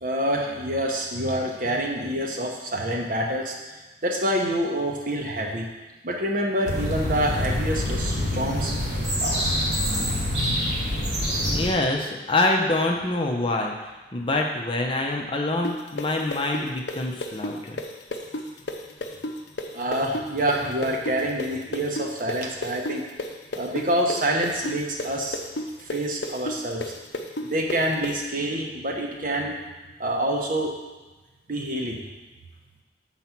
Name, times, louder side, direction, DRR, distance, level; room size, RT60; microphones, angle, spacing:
voice 1, 0.0-3.5 4.0-5.7 6.0-8.7 9.2-9.6 19.7-23.0 23.6-25.4 25.8-26.9 27.4-29.6 30.0-30.7 31.5-32.0, right 1 dB, 50° right, 0 dB, 1.0 m, -27 dB
sound 1, 6.6-11.7, left 1 dB, 80° right, 2.8 m, -26 dB
voice 2, 11.5-13.7 14.1-17.8, left 2 dB, 30° left, 1 dB, 0.7 m, -25 dB
sound 2, 15.6-23.3 23.5-28.1, left 1 dB, 70° left, 0.7 m, -31 dB
7.4 x 4.1 x 5.9 m, 1.2 s
head